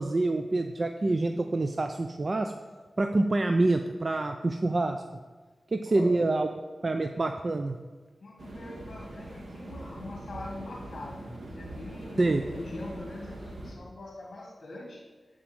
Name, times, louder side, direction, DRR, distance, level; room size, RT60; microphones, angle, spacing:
voice 1, 0.0-2.5 3.0-5.0 5.7-6.5 6.8-7.8 12.2-12.4, right 2 dB, 40° right, 6 dB, 0.5 m, -26 dB
voice 2, 5.9-6.3 8.2-15.0, left 2 dB, 60° left, -1 dB, 1.6 m, -43 dB
sound 1, 8.4-13.7, right 1 dB, 90° right, 2.5 m, -42 dB
11.5 x 5.0 x 7.7 m, 1.4 s
wide cardioid pair, 95°, 0 cm